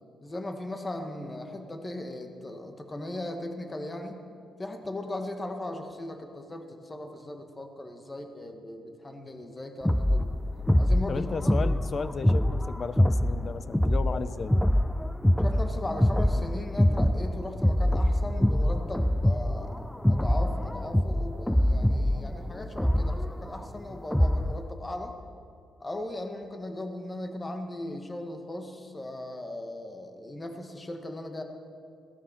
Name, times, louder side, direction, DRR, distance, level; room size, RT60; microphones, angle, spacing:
voice 1, 0.2-4.2 4.6-10.4 10.8-11.3 15.4-25.1 25.8-31.4, left 1 dB, 20° left, 5 dB, 1.7 m, -38 dB
sound 1, 9.8-24.6, left 1 dB, 5° left, 0.3 m, -25 dB
voice 2, 11.1-14.6, left 5 dB, 40° left, 14 dB, 0.7 m, -34 dB
16.5 x 13.0 x 5.9 m, 2.3 s
cardioid pair, 90°, 0 cm